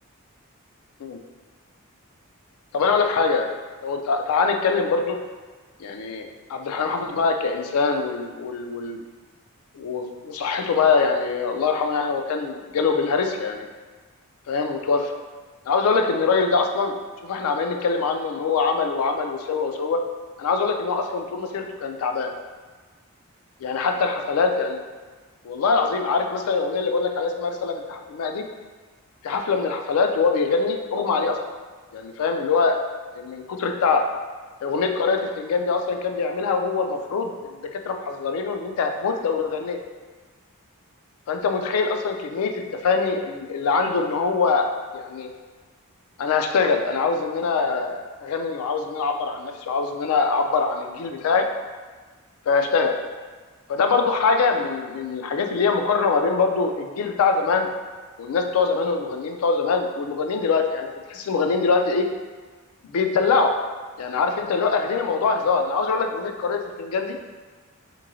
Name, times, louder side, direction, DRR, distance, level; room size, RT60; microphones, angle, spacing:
voice 1, 2.7-3.5 3.8-5.2 5.8-9.0 9.7-13.7 14.5-15.1 15.7-16.9 17.2-20.0 20.4-22.3 23.6-24.8 25.4-28.4 29.2-31.4 31.9-32.8 33.1-34.0 34.6-39.8 41.3-44.7 44.9-45.3 46.2-51.5 52.5-52.9 53.7-57.7 58.2-62.1 62.9-63.5 64.0-67.2, left 4 dB, 75° left, 4 dB, 0.3 m, -23 dB
3.0 x 2.7 x 2.5 m, 1.4 s
head